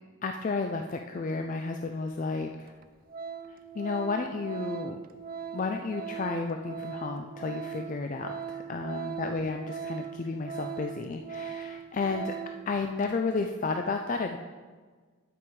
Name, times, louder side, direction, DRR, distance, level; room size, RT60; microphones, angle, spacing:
voice 1, 0.2-2.7 3.5-5.0 5.5-12.4 12.7-14.4, left 4 dB, 35° left, 5 dB, 0.3 m, -32 dB
Organ, 2.1-2.2 2.7-2.8 3.1-12.7 13.0-13.2, right 7 dB, 40° right, 0.4 m, -39 dB
9.0 x 6.0 x 4.6 m, 1.4 s
head